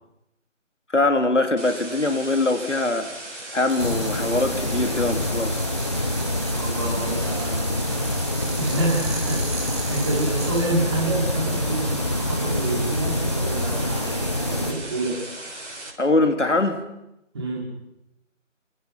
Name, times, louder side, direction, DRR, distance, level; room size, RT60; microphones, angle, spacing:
voice 1, 0.9-3.1 3.5-5.6 16.0-16.8, left 2 dB, 65° left, 7 dB, 2.9 m, -22 dB
sound 1, 1.6-15.9, right 1 dB, 65° right, 7.0 m, -38 dB
sound 2, 3.7-10.6, right 2 dB, 40° right, 5.6 m, -39 dB
sound 3, 3.8-14.7, left 1 dB, 20° left, 1.2 m, -26 dB
voice 2, 6.5-7.9 8.6-15.2 17.3-17.7, right 2 dB, 20° right, -3 dB, 5.6 m, -28 dB
30.0 x 25.0 x 6.0 m, 0.87 s
figure-of-eight pair, 165°, 39 cm